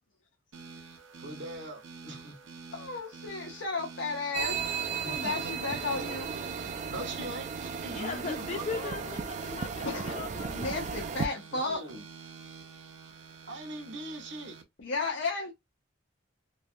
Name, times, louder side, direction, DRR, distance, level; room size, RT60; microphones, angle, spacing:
sound 1, 0.5-14.6, right 5 dB, 90° right, 0.7 m, -48 dB
voice 1, 1.2-2.4 5.0-5.3 6.9-9.1 11.5-12.0 13.5-14.6, right 1 dB, 65° right, 0.9 m, -41 dB
voice 2, 2.7-4.6 5.1-6.3 9.8-10.1 10.5-11.8 14.8-15.5, left 3 dB, 75° left, 0.7 m, -33 dB
sound 2, 4.3-11.3, right 6 dB, 40° right, 0.3 m, -35 dB
voice 3, 7.9-10.8, left 5 dB, 35° left, 0.3 m, -39 dB
3.1 x 2.3 x 2.5 m
head